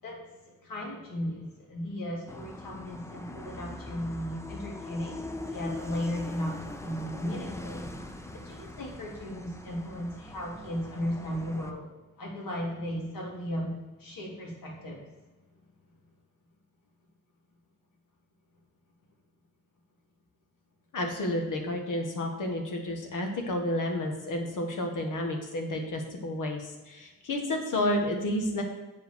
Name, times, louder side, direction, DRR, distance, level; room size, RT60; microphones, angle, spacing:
voice 1, 0.0-11.9 12.2-15.0, equal, 90° left, -2 dB, 3.0 m, -36 dB
sound 1, 2.3-11.7, left 2 dB, 10° left, 0.6 m, -42 dB
voice 2, 20.9-28.6, left 1 dB, 70° left, 3 dB, 1.7 m, -31 dB
7.6 x 5.3 x 7.1 m, 1.1 s
wide cardioid pair, 175°, 33 cm